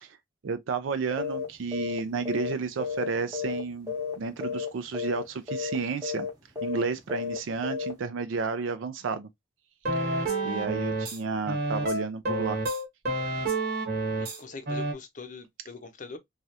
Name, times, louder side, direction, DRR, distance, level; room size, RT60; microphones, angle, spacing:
voice 1, 0.4-6.3 6.6-9.3 10.4-12.6, right 5 dB, 80° right, 0.4 m, -32 dB
sound 1, 1.2-1.5 1.7-2.0 2.2-3.6 3.9-4.1 4.4-4.7 4.9-5.2 5.5-5.8 6.0-6.3 6.6-6.8 7.1-7.4 7.6-7.9, left 5 dB, 20° right, 0.8 m, -32 dB
sound 2, 9.9-11.2 11.5-14.4 14.7-14.9, right 2 dB, 50° right, 0.9 m, -29 dB
voice 2, 14.1-16.2, left 4 dB, 40° left, 0.6 m, -43 dB
3.1 x 2.3 x 2.7 m
head